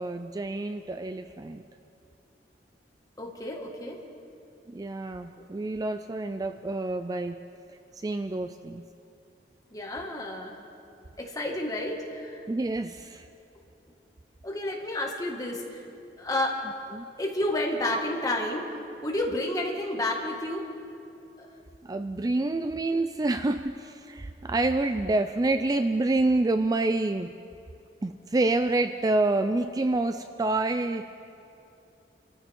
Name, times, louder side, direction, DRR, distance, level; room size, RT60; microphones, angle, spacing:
voice 1, 0.0-1.6 4.7-7.4 8.0-8.9 12.5-13.2 16.9-17.1 21.8-27.3 28.0-31.1, right 2 dB, 20° right, 9 dB, 0.4 m, -27 dB
voice 2, 3.2-4.0 9.7-10.5 11.2-12.4 14.4-15.8 16.2-16.6 17.2-18.7 19.0-20.6 21.4-21.5, left 1 dB, 20° left, -1 dB, 1.9 m, -30 dB
27.0 x 14.0 x 3.7 m, 2.7 s
head